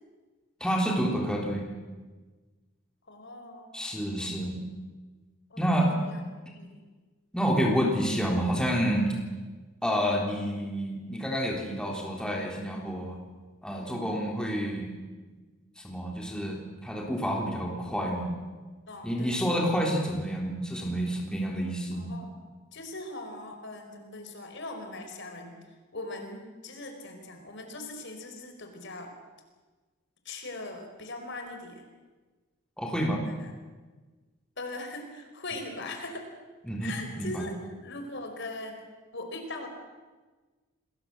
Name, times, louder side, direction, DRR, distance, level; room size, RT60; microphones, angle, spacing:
voice 1, 0.6-1.7 3.7-4.6 5.6-5.9 7.3-9.1 9.8-13.2 13.6-14.9 15.8-18.3 19.0-22.1 32.8-33.2 36.6-37.4, equal, 5° left, -1 dB, 3.6 m, -29 dB
voice 2, 3.1-3.7 5.5-6.2 6.5-6.8 18.9-19.4 21.9-22.3 22.7-29.1 30.2-31.8 33.3-33.5 34.6-36.3 36.8-37.6 37.8-38.8 39.1-39.7, left 2 dB, 60° left, 5 dB, 4.8 m, -40 dB
27.5 x 20.5 x 8.0 m, 1.3 s
head